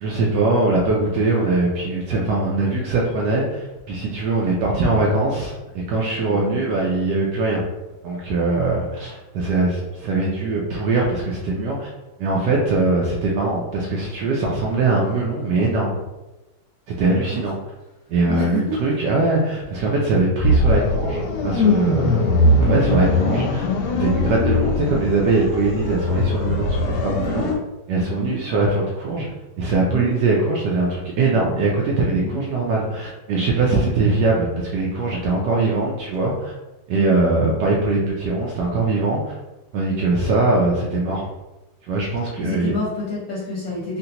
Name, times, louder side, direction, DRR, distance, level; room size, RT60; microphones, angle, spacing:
voice 1, 0.0-7.6 8.0-11.9 12.2-16.0 16.9-17.6 18.1-23.6 24.0-27.5 27.9-29.3 29.6-36.5 36.9-39.4 39.7-41.3 41.9-42.7, right 3 dB, 85° right, -3 dB, 0.9 m, -21 dB
voice 2, 17.0-17.4 18.3-18.8 28.1-28.3 29.9-30.1 32.2-32.4 33.7-33.9 36.9-37.2 42.4-44.0, left 1 dB, 60° left, -8 dB, 0.9 m, -29 dB
sound 1, 20.4-27.5, left 2 dB, 85° left, 1.5 m, -20 dB
3.9 x 2.1 x 2.8 m, 1.0 s
omnidirectional pair, 2.4 m